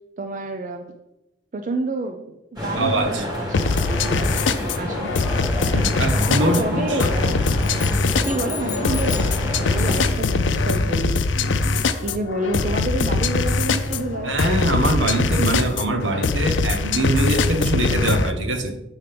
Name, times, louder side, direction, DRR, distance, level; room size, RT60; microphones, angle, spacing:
voice 1, 0.2-0.9 1.5-5.1 6.4-7.4 8.2-14.4, right 2 dB, 45° right, 6 dB, 0.5 m, -29 dB
sound 1, 2.6-10.1, left 1 dB, 25° right, 1.9 m, -29 dB
voice 2, 2.7-3.2 5.7-7.1 14.2-18.8, right 2 dB, 85° right, 6 dB, 1.0 m, -23 dB
sound 2, 3.5-18.3, left 3 dB, 90° left, 0.5 m, -22 dB
sound 3, 7.6-9.4, left 8 dB, 20° left, 0.8 m, -35 dB
7.5 x 7.1 x 3.4 m, 0.94 s
head